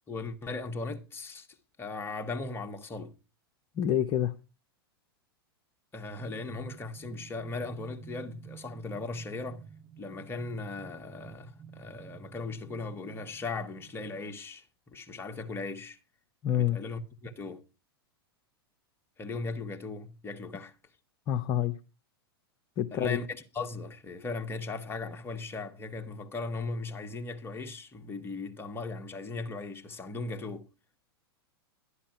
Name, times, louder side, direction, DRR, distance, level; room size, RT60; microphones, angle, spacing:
voice 1, 0.1-1.5 1.8-3.1 5.9-9.7 10.0-16.0 16.5-17.6 19.2-20.7 22.9-30.7, left 3 dB, 15° left, 1.5 m, -38 dB
voice 2, 3.7-4.3 16.4-16.8 21.3-21.7 22.8-23.2, left 11 dB, 35° left, 0.9 m, -27 dB
sound 1, 6.2-14.4, right 6 dB, 10° right, 1.6 m, -51 dB
11.5 x 10.0 x 4.5 m
hypercardioid pair, 100°, 13 cm